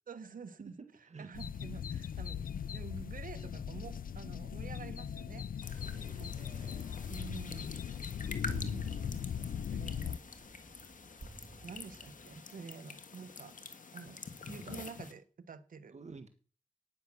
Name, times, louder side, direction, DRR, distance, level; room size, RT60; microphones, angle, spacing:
voice 1, 0.1-0.8 1.2-5.9 6.2-6.4 7.1-8.0 8.6-10.4 11.6-13.6 13.9-14.2 14.5-15.9, right 5 dB, 75° right, 10 dB, 1.2 m, -49 dB
voice 2, 0.8-1.3 5.8-7.2 14.6-14.7 15.9-16.3, right 4 dB, 55° right, 8 dB, 1.8 m, -52 dB
sound 1, 1.3-10.2, left 8 dB, 85° left, 0.5 m, -39 dB
sound 2, 5.6-15.1, left 4 dB, 70° left, 1.7 m, -47 dB
sound 3, 7.0-12.4, right 2 dB, 40° right, 3.3 m, -51 dB
12.5 x 9.8 x 6.2 m, 0.40 s
wide cardioid pair, 80°, 14 cm